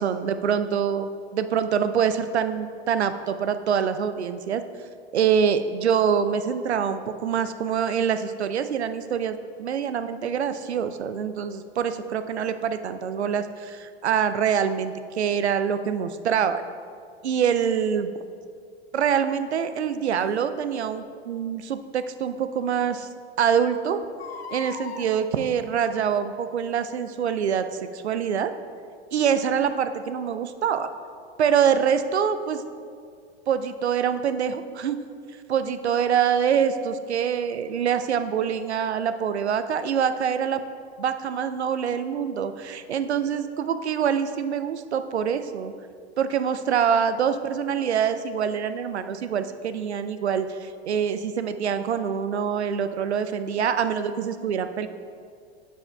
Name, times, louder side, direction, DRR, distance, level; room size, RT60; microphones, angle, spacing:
voice 1, 0.0-4.6 5.1-16.6 17.2-18.2 18.9-23.1 23.4-24.0 24.5-28.5 29.1-30.9 31.4-32.6 33.5-35.0 35.5-40.6 41.0-45.7 46.2-54.9, right 7 dB, 80° right, 10 dB, 0.5 m, -25 dB
Crying sobbing, 17.6-17.7 20.2-20.4 22.0-22.1 22.6-22.7 22.9-23.0 24.0-25.1 26.1-26.4 27.0-27.1, left 5 dB, 70° left, 0.7 m, -40 dB
9.1 x 7.5 x 2.3 m, 2.2 s
figure-of-eight pair, 90°, 33 cm